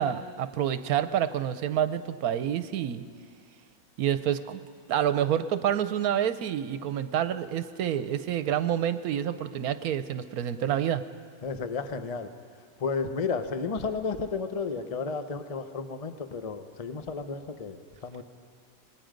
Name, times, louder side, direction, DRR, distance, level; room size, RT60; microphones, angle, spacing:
voice 1, 0.0-3.0 4.0-4.6 4.9-11.0, right 10 dB, 80° right, 12 dB, 1.2 m, -28 dB
voice 2, 11.4-12.3 12.8-18.2, left 4 dB, 30° left, 8 dB, 0.8 m, -32 dB
27.0 x 20.0 x 5.2 m, 2.2 s
omnidirectional pair, 1.6 m